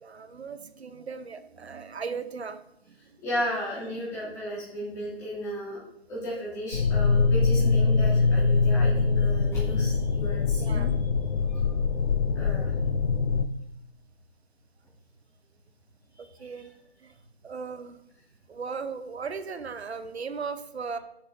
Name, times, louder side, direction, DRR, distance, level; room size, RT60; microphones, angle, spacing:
voice 1, 0.0-2.6 7.5-7.9 10.6-10.9 16.2-16.7 17.0-17.1 17.4-18.0 18.5-21.0, right 5 dB, 80° right, 10 dB, 0.8 m, -37 dB
voice 2, 3.2-5.8 6.1-10.9 11.5-11.6 12.3-12.7 16.2-16.7, equal, 10° left, -8 dB, 2.2 m, -35 dB
sound 1, 6.7-13.5, left 4 dB, 60° left, 0.6 m, -23 dB
6.9 x 5.9 x 3.9 m, 0.79 s
figure-of-eight pair, 160°, 32 cm